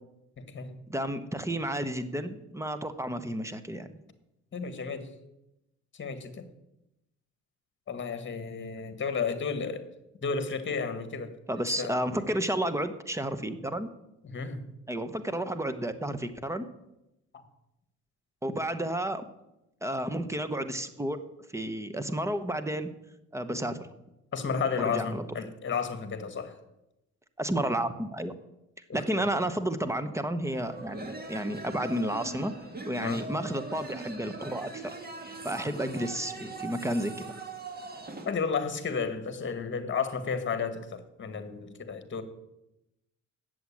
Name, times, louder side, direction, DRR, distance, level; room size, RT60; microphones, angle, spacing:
voice 1, 0.4-0.8 4.5-5.1 5.9-6.5 7.9-9.9 10.2-11.3 11.7-11.9 14.2-14.6 24.3-26.6 28.9-29.3 33.0-33.2 38.2-42.2, left 5 dB, 40° left, 1.6 m, -32 dB
voice 2, 0.9-3.9 11.5-13.9 14.9-16.7 18.4-19.2 19.8-21.2 21.5-22.9 23.3-23.8 24.8-25.2 27.4-28.3 28.9-32.5 32.8-34.9 35.4-37.3, right 1 dB, 10° right, 1.0 m, -31 dB
sound 1, 30.4-38.3, right 2 dB, 30° right, 1.9 m, -41 dB
8.0 x 7.8 x 8.5 m
cardioid pair, 90°, 30 cm